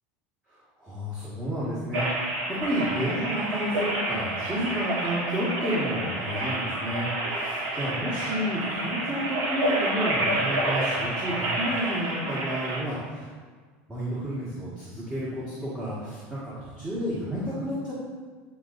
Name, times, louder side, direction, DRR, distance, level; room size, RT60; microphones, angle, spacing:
voice 1, 0.5-13.3 13.9-17.9, equal, 15° right, -10 dB, 1.7 m, -31 dB
sound 1, 1.9-12.8, right 1 dB, 70° right, 1.3 m, -29 dB
9.4 x 3.8 x 2.6 m, 1.5 s
supercardioid pair, 120°, 6 cm